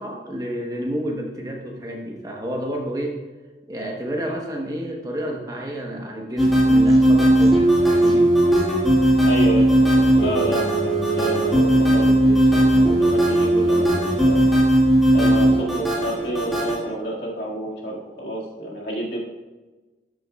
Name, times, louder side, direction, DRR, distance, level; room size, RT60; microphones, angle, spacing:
voice 1, 0.0-3.2 3.7-8.4, right 1 dB, 20° right, 0 dB, 1.0 m, -30 dB
sound 1, 6.4-16.8, right 1 dB, ahead, 2.1 m, -17 dB
voice 2, 9.2-14.5 15.1-19.2, right 1 dB, 65° left, -4 dB, 2.0 m, -29 dB
13.0 x 6.8 x 2.3 m, 1.2 s
head